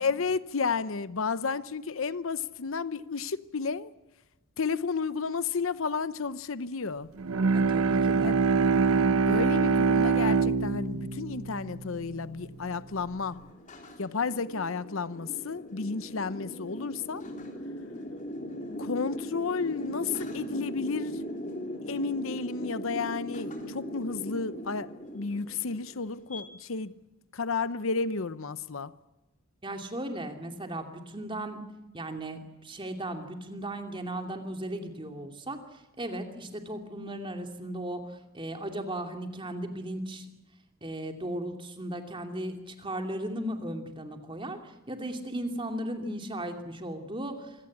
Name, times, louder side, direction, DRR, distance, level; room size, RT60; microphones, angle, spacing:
voice 1, 0.0-3.9 4.6-7.1 8.2-8.4 9.3-13.6 14.0-17.2 18.8-21.3 21.9-27.0 27.3-28.9, left 4 dB, 65° left, 0.7 m, -32 dB
Bowed string instrument, 7.2-12.6, right 4 dB, 85° right, 0.8 m, -25 dB
voice 2, 7.5-8.5 29.6-31.6 31.9-40.3 40.8-47.6, right 1 dB, 25° right, 2.7 m, -36 dB
sound 1, 10.9-26.4, equal, 35° left, 3.4 m, -40 dB
26.0 x 17.5 x 8.6 m
head